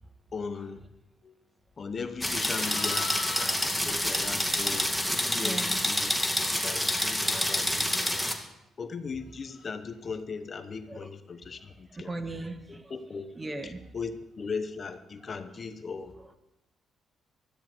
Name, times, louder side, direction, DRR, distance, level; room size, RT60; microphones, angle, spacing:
voice 1, 0.3-0.8 1.2-1.3 1.8-3.1 3.4-6.1 6.6-8.3 8.8-12.1 12.7-13.3 13.6-16.1, left 5 dB, 40° left, 9 dB, 1.1 m, -38 dB
Livestock farm animals working animals, 1.9-5.1 9.5-9.7, left 6 dB, 60° left, 2.4 m, -41 dB
sound 1, 2.2-8.3, left 1 dB, ahead, 2.1 m, -28 dB
voice 2, 5.4-5.8 7.8-7.9 10.9-11.1 11.9-12.9 13.3-13.8, right 2 dB, 20° right, 8 dB, 1.5 m, -38 dB
16.0 x 13.0 x 4.7 m, 0.91 s
cardioid pair, 90°, 0 cm